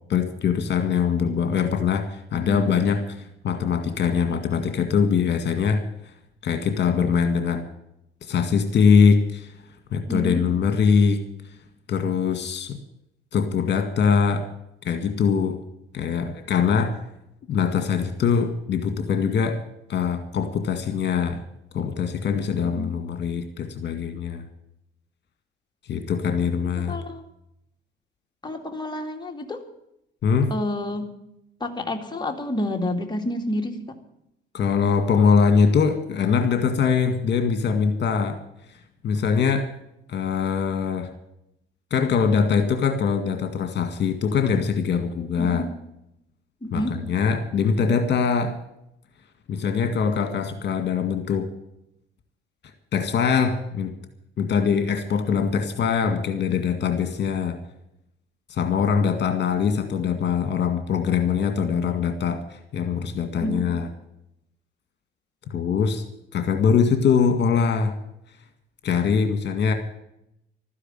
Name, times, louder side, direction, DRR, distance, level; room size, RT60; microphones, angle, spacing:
voice 1, 0.1-6.1 6.4-7.7 8.2-9.5 9.9-11.2 11.9-12.8 13.3-14.5 14.8-15.6 15.9-17.0 17.5-19.6 19.9-21.4 21.7-24.4 25.9-27.0 30.2-30.5 34.5-38.4 38.7-39.7 40.1-41.1 41.9-45.6 46.7-48.6 49.5-51.5 52.9-53.9 54.4-57.6 58.5-63.9 65.5-66.0 66.3-67.9 68.8-69.7, left 6 dB, 60° left, 7 dB, 2.0 m, -22 dB
voice 2, 10.1-10.4 22.6-22.9 26.9-27.2 28.4-29.6 30.5-31.1 31.6-33.8 45.4-45.6 46.6-47.0 63.4-63.7, left 1 dB, 20° left, 3 dB, 2.4 m, -29 dB
13.0 x 10.0 x 9.1 m, 0.80 s
cardioid pair, 90°, 20 cm